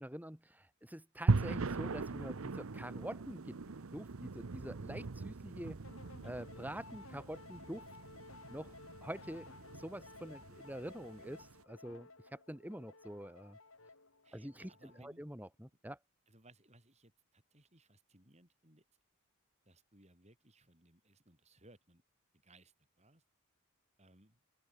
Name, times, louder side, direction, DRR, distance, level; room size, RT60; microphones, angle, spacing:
voice 1, 0.0-3.6 3.9-5.8 6.2-7.8 8.5-8.7 9.0-13.6 14.3-16.0, equal, 5° right, 2.6 m, -46 dB
sound 1, 1.3-11.5, right 3 dB, 70° right, 0.8 m, -40 dB
sound 2, 5.8-15.2, left 3 dB, 70° left, 5.6 m, -56 dB
voice 2, 14.2-15.2 16.3-18.8 19.7-22.0 22.4-23.2 24.0-24.4, right 2 dB, 30° right, 7.0 m, -64 dB
open air
head